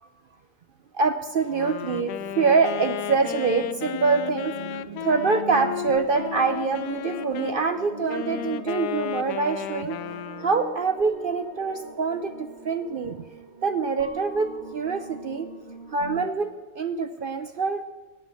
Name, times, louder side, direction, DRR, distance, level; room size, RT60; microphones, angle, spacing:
voice 1, 0.9-10.0 10.4-13.2 13.6-15.5 15.9-17.8, right 4 dB, 65° right, 9 dB, 0.5 m, -25 dB
Wind instrument woodwind instrument, 1.4-7.6 8.1-10.7, left 12 dB, 90° left, 1.1 m, -34 dB
sound 1, 1.8-16.3, right 4 dB, 45° right, 1.4 m, -41 dB
17.5 x 5.9 x 7.3 m, 1.3 s
omnidirectional pair, 1.6 m